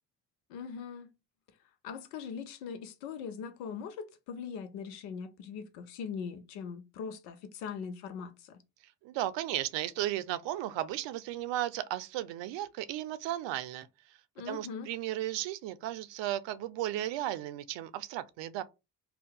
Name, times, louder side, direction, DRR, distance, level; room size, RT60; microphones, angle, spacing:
voice 1, 0.5-1.1 1.8-8.6 14.4-14.9, left 6 dB, 90° left, 0.6 m, -41 dB
voice 2, 9.0-13.9 14.5-18.6, right 13 dB, 70° right, 0.5 m, -35 dB
2.6 x 2.3 x 3.6 m
hypercardioid pair, 50°, 46 cm